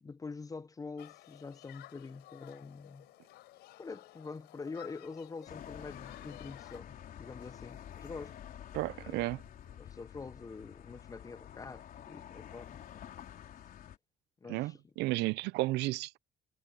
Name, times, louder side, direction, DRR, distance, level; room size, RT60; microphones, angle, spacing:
voice 1, 0.0-3.1 3.8-8.4 8.9-9.2 9.8-12.8 14.4-14.8, left 4 dB, 20° left, 0.6 m, -45 dB
Human group actions, 1.0-6.8, left 16 dB, 85° left, 4.3 m, -54 dB
sound 1, 5.5-14.0, left 10 dB, 60° left, 4.0 m, -49 dB
voice 2, 8.7-9.4 14.5-16.2, right 20 dB, 85° right, 0.5 m, -33 dB
cardioid pair, 110°, 17 cm